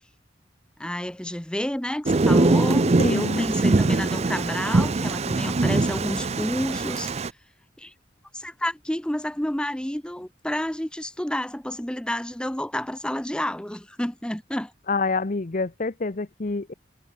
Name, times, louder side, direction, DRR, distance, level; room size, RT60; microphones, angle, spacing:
voice 1, 0.8-7.1 7.8-7.9 8.3-14.7, left 1 dB, 5° left, 0.8 m, -30 dB
Thunder, 2.1-7.3, right 3 dB, 40° right, 0.6 m, -22 dB
voice 2, 3.0-3.5 14.9-16.7, left 3 dB, 45° left, 0.8 m, -27 dB
head